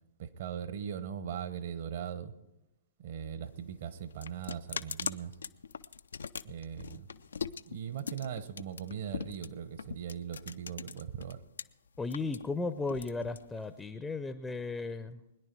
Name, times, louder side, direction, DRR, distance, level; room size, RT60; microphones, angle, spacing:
voice 1, 0.2-2.3 3.0-5.3 6.4-7.1 7.6-11.4, right 8 dB, 50° right, 13 dB, 1.0 m, -39 dB
sound 1, 3.5-11.6 12.0-13.9, left 6 dB, 65° left, 0.4 m, -41 dB
voice 2, 12.0-15.2, left 3 dB, 10° left, 11 dB, 0.6 m, -35 dB
21.0 x 10.5 x 4.6 m, 0.93 s
figure-of-eight pair, 120°, 0 cm